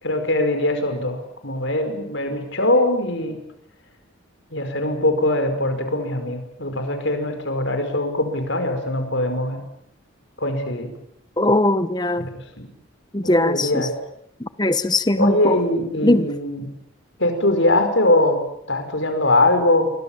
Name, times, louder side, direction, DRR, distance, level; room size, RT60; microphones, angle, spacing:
voice 1, 0.0-3.4 4.5-9.6 10.4-10.9 12.2-12.7 13.2-13.9 15.2-16.7 17.2-18.4 18.7-19.9, left 1 dB, 60° left, 5.4 m, -22 dB
voice 2, 11.4-12.3 13.1-13.9 14.4-15.6 16.0-16.3, left 1 dB, 20° left, 1.0 m, -20 dB
29.0 x 24.0 x 7.4 m
head